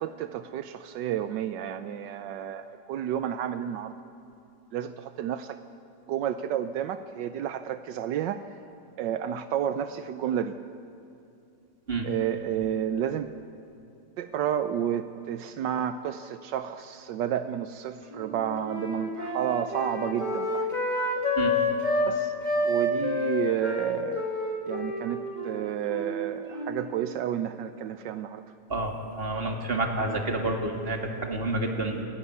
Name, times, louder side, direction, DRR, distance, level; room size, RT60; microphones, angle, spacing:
voice 1, 0.0-3.9 4.7-5.6 6.1-8.4 9.0-10.5 12.0-13.3 14.2-20.8 22.1-24.2 24.7-28.4, right 10 dB, 80° right, 10 dB, 1.3 m, -31 dB
Wind instrument woodwind instrument, 18.1-22.1 22.4-26.9, left 1 dB, 25° left, 2.3 m, -29 dB
voice 2, 28.7-32.0, right 2 dB, 30° right, 3 dB, 2.3 m, -29 dB
29.5 x 11.5 x 9.5 m, 2.7 s
omnidirectional pair, 1.9 m